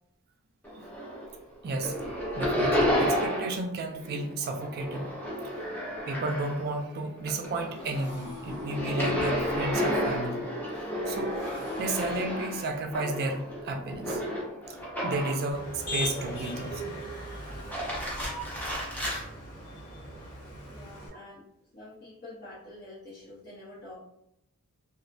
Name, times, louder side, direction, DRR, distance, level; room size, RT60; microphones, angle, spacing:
sound 1, 0.6-1.4 1.6-3.7 3.9-6.8 7.2-15.5 16.0-16.7 17.5-19.2, equal, 5° left, 0.6 m, -31 dB
voice 1, 1.6-2.0 2.4-5.1 6.1-10.5 10.8-14.2 14.7-14.8 15.0-16.9 21.1-21.2, right 2 dB, 45° right, 4 dB, 0.3 m, -33 dB
Motorcycle, 6.1-16.4, left 2 dB, 10° right, 0.9 m, -47 dB
Motor vehicle (road), 15.5-21.1, equal, 75° left, 1.1 m, -39 dB
voice 2, 20.7-21.4 21.7-24.0, left 2 dB, 45° left, -10 dB, 0.7 m, -47 dB
2.4 x 2.0 x 2.5 m, 0.79 s
head